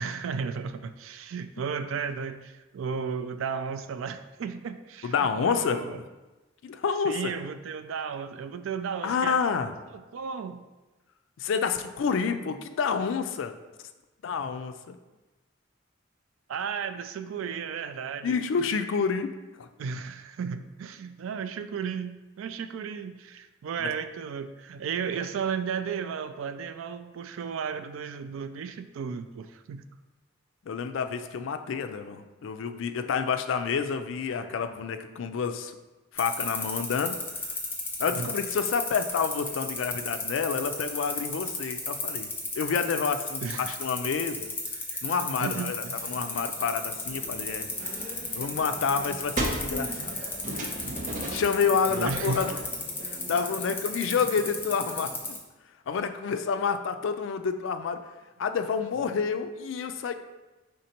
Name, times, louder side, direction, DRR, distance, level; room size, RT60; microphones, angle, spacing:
voice 1, 0.0-6.0 7.0-9.4 9.9-10.7 16.5-18.3 19.8-29.8 34.4-34.6 38.1-38.3 43.4-43.8 44.7-45.0 45.4-46.3 51.9-52.4, right 6 dB, 85° right, 10 dB, 0.3 m, -34 dB
voice 2, 5.0-6.0 6.6-7.3 9.0-9.7 11.4-13.6 14.2-15.0 18.2-19.3 19.6-19.7 23.8-23.9 30.7-35.7 36.1-37.2 38.0-42.3 42.5-44.5 45.0-47.7 48.3-50.2 51.3-52.5 53.1-55.1 55.9-58.0 58.4-60.1, left 6 dB, 75° left, 9 dB, 0.4 m, -29 dB
sound 1, 36.2-55.4, left 3 dB, 10° left, 0.6 m, -33 dB
sound 2, 45.6-55.3, right 1 dB, 65° right, 1.0 m, -46 dB
sound 3, 47.1-52.6, right 1 dB, 40° right, 0.6 m, -36 dB
5.1 x 3.6 x 2.8 m, 1.1 s
head